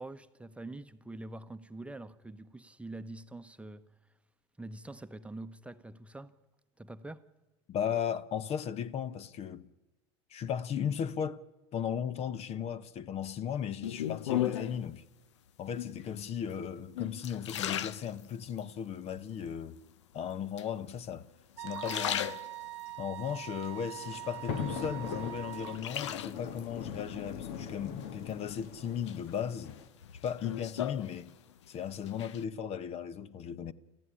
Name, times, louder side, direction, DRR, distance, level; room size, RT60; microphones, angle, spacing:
voice 1, 0.0-3.9 4.6-6.3 6.8-7.2, right 2 dB, 10° right, 0.9 m, -45 dB
voice 2, 7.7-9.7 10.3-11.4 11.7-15.0 15.6-19.8 20.1-21.3 21.6-22.4 23.0-29.8 30.2-31.3 31.7-33.7, left 8 dB, 45° left, 1.0 m, -36 dB
sound 1, 13.8-14.9 15.7-16.2 16.7-18.7 19.2-19.8 20.6-21.2 21.6-22.9 23.4-24.6 25.0-26.6 28.0-28.6 29.1-31.7 31.9-32.4, left 11 dB, 85° left, 0.8 m, -37 dB
Wind instrument woodwind instrument, 21.6-25.8, right 17 dB, 80° right, 1.1 m, -43 dB
sound 2, 23.3-29.9, left 7 dB, 65° left, 1.7 m, -41 dB
27.5 x 14.5 x 10.0 m
hypercardioid pair, 90°, 15 cm